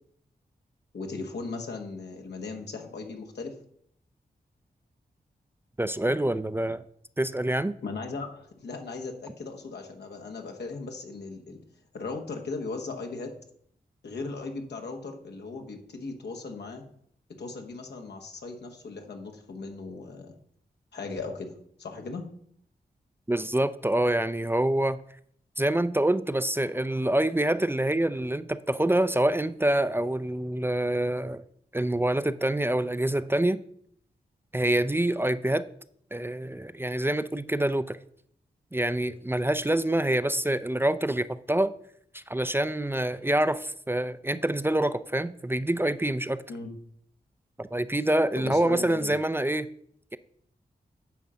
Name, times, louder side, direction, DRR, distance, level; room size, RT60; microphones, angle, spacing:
voice 1, 0.9-3.5 7.8-11.6 11.9-13.3 14.0-16.8 17.4-20.3 20.9-22.2 46.5-46.7 48.4-49.1, left 3 dB, 85° left, 3 dB, 1.4 m, -37 dB
voice 2, 5.8-6.8 7.2-7.7 23.3-25.0 25.6-31.4 31.7-33.6 34.5-35.7 36.1-38.0 38.7-41.7 42.1-46.4 47.6-49.7, right 1 dB, 15° right, 13 dB, 0.4 m, -26 dB
9.2 x 3.8 x 6.9 m, 0.66 s
cardioid pair, 50°, 17 cm